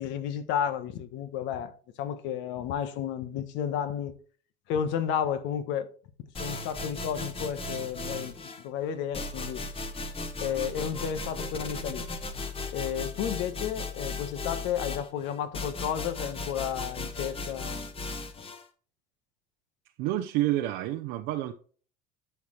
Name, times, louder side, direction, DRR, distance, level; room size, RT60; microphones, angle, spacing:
voice 1, 0.0-1.7 2.0-4.1 4.7-5.9 6.4-9.6 10.4-12.1 12.7-17.8, left 8 dB, 65° left, 1.3 m, -32 dB
sound 1, 6.3-8.6 9.1-18.6, left 3 dB, 25° left, 1.3 m, -36 dB
voice 2, 20.0-21.5, right 14 dB, 65° right, 0.8 m, -28 dB
12.0 x 4.6 x 3.2 m
supercardioid pair, 90°, 20 cm